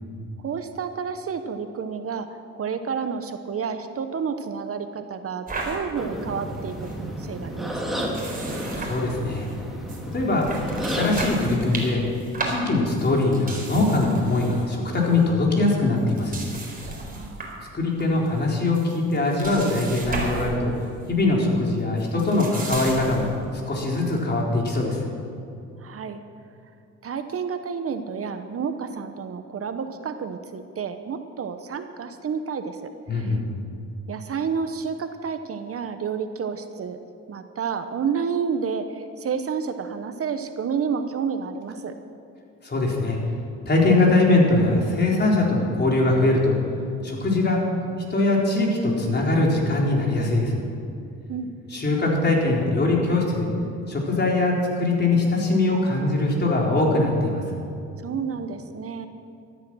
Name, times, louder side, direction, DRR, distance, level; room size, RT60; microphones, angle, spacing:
voice 1, 0.4-8.0 17.1-17.6 25.8-26.2 27.0-32.8 33.1-33.4 34.1-37.0 37.3-41.9 51.3-51.5 58.0-59.1, right 6 dB, 50° right, 8 dB, 1.0 m, -30 dB
sound 1, 5.5-5.8 6.2-6.3 6.5-6.9 8.0-9.5 9.9-10.0 10.4-14.6 14.9-15.2 16.0-17.6 18.0-18.4 18.7-20.5 20.8-21.1 22.0-23.4, right 3 dB, 30° right, 4.3 m, -34 dB
sound 2, 5.9-11.5, equal, ahead, 3.1 m, -31 dB
voice 2, 8.8-9.5 10.1-10.5 10.9-12.0 12.5-16.4 17.7-20.7 21.1-23.3 23.7-25.0 33.1-33.5 42.6-43.2 43.7-46.6 47.0-47.6 48.1-50.6 51.7-53.5 53.9-57.4, left 2 dB, 35° left, -2 dB, 4.0 m, -22 dB
14.0 x 13.5 x 6.2 m, 2.6 s
cardioid pair, 90°, 30 cm